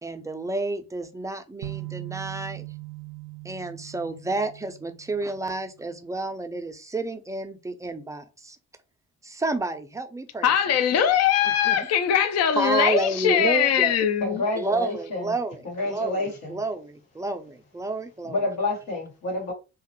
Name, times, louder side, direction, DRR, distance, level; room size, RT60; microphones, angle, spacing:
voice 1, 0.0-2.7 3.4-8.6 9.2-10.5 11.5-11.9 12.6-13.9 14.5-18.4, right 2 dB, 10° right, 0.4 m, -30 dB
sound 1, 1.6-5.6, right 21 dB, 70° right, 0.5 m, -40 dB
voice 2, 10.4-14.4, left 8 dB, 50° left, 0.4 m, -21 dB
voice 3, 14.2-15.3 15.6-16.6 18.2-19.5, left 2 dB, 85° left, 1.2 m, -29 dB
2.3 x 2.0 x 2.8 m
supercardioid pair, 75°, 33 cm